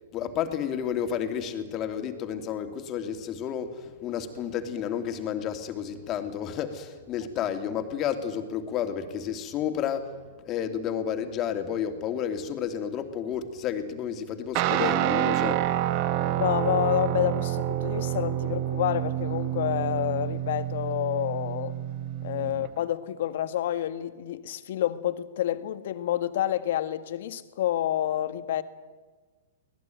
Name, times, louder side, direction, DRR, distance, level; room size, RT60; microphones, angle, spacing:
voice 1, 0.1-10.1 10.4-15.6 22.5-22.6, left 8 dB, 35° left, 6 dB, 2.9 m, -31 dB
Guitar, 14.5-22.7, right 13 dB, 45° right, 1.6 m, -28 dB
voice 2, 16.4-21.7 22.2-28.6, left 12 dB, 60° left, 11 dB, 1.7 m, -28 dB
24.5 x 19.0 x 9.4 m, 1.4 s
hypercardioid pair, 120°, 0 cm